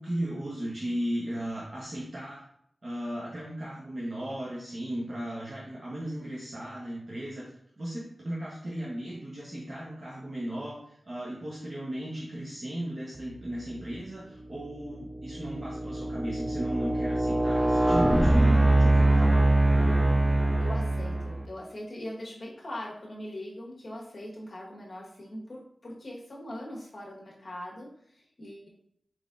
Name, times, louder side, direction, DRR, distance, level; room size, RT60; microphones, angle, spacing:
voice 1, 0.0-2.4 2.8-7.5 7.8-19.3, right 1 dB, 50° right, -6 dB, 0.9 m, -36 dB
sound 1, 13.7-14.0 14.6-21.4, right 1 dB, 10° right, 0.3 m, -23 dB
voice 2, 20.6-28.7, left 1 dB, 55° left, -4 dB, 1.2 m, -41 dB
4.4 x 4.0 x 2.4 m, 0.69 s
wide cardioid pair, 100°, 0 cm